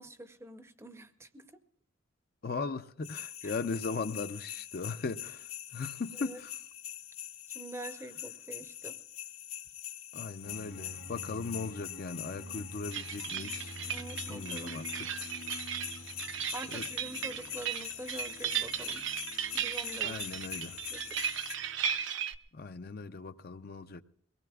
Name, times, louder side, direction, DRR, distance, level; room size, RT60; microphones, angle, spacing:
voice 1, 0.0-1.5 3.4-3.5 6.2-6.4 7.5-9.0 12.3-12.7 13.9-14.8 16.5-19.1 19.5-20.6 20.9-21.2, right 1 dB, 15° right, 0.6 m, -46 dB
voice 2, 2.4-5.5 5.7-6.6 10.1-13.7 14.3-14.8 15.1-15.2 16.7-16.8 20.0-20.8 22.5-24.0, left 4 dB, 45° left, 0.5 m, -38 dB
sound 1, 3.0-21.5, left 12 dB, 80° left, 1.3 m, -44 dB
sound 2, 10.4-22.0, equal, 65° left, 1.7 m, -50 dB
sound 3, 12.9-22.4, right 9 dB, 60° right, 0.6 m, -36 dB
23.0 x 18.5 x 2.3 m
head